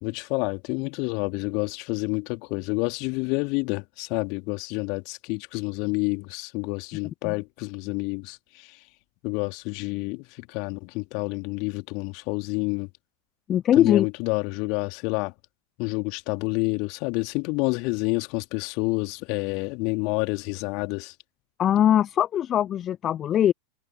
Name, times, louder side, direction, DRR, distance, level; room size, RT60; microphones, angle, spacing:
voice 1, 0.0-8.7 9.2-12.9 13.8-15.3 15.8-21.1, left 31 dB, 45° left, 2.9 m, -28 dB
voice 2, 13.5-14.1 21.6-23.5, left 10 dB, 30° left, 1.0 m, -21 dB
figure-of-eight pair, 90°, 0 cm